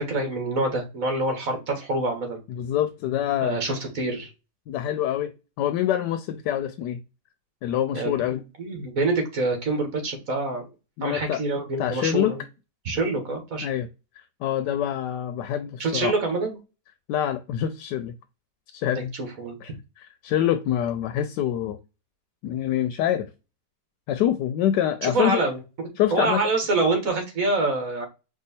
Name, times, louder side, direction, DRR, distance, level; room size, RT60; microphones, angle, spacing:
voice 1, 0.0-2.4 3.4-4.3 7.9-10.7 11.0-12.4 12.9-13.7 15.8-16.6 19.1-19.6 25.0-25.6 26.1-28.0, right 2 dB, 50° right, 1.8 m, -26 dB
voice 2, 2.5-3.6 4.7-7.0 7.6-8.4 11.0-11.4 11.8-12.4 13.6-13.9 14.2-16.1 17.1-18.1 18.7-19.1 19.6-21.8 22.4-23.3 24.1-25.4 26.0-26.4, left 11 dB, 80° left, 1.2 m, -26 dB
4.6 x 2.8 x 4.1 m
omnidirectional pair, 1.9 m